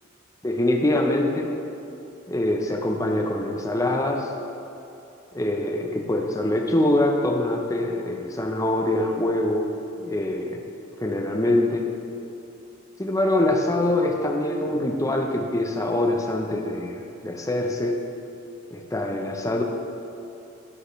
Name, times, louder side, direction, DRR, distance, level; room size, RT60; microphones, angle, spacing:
voice 1, 0.4-1.5 2.3-4.3 5.3-9.7 10.0-10.6 11.0-11.9 13.0-18.0 18.7-19.6, left 1 dB, 15° left, 2 dB, 0.7 m, -24 dB
9.9 x 7.5 x 3.2 m, 2.7 s
head